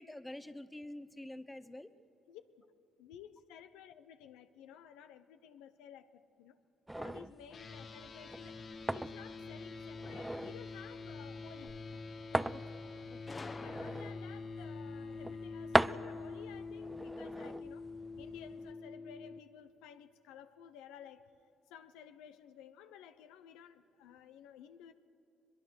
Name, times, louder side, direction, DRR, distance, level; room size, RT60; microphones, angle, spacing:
voice 1, 0.0-1.9 12.5-12.6 13.1-13.4, left 1 dB, 10° left, 1.0 m, -47 dB
voice 2, 2.3-2.7 3.0-6.6 7.0-8.6 8.9-12.0 12.3-12.9 13.6-21.3 21.7-24.9, left 9 dB, 85° left, 0.7 m, -54 dB
sound 1, 6.9-18.7, right 1 dB, 10° right, 0.5 m, -39 dB
sound 2, 7.5-19.4, left 4 dB, 50° left, 1.7 m, -46 dB
Gunshot gunfire, 13.3-14.5, left 3 dB, 30° left, 1.2 m, -48 dB
22.0 x 22.0 x 6.4 m
supercardioid pair, 60°, 0 cm